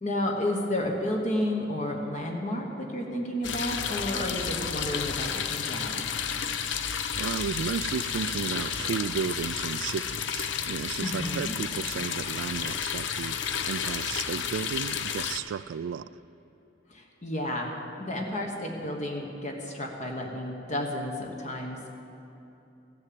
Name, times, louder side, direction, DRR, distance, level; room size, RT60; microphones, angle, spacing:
voice 1, 0.0-6.1 11.0-11.5 16.9-21.9, left 1 dB, 40° left, 1.2 m, -31 dB
sound 1, 3.4-15.4, left 7 dB, 75° left, 0.6 m, -32 dB
voice 2, 6.7-16.1, right 7 dB, 80° right, 0.3 m, -34 dB
15.0 x 7.4 x 7.7 m
head